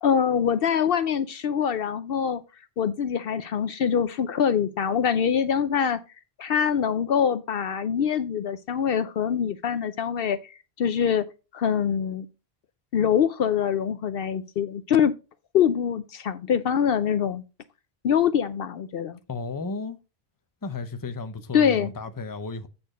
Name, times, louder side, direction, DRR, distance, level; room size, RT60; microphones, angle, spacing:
voice 1, 0.0-2.4 2.8-6.0 6.4-11.2 11.5-12.3 12.9-15.1 15.5-17.4 18.0-19.2 21.5-21.9, left 8 dB, 65° left, 0.8 m, -24 dB
voice 2, 19.3-20.0 20.6-22.7, left 3 dB, 25° left, 0.7 m, -33 dB
8.5 x 4.4 x 4.9 m
omnidirectional pair, 1.1 m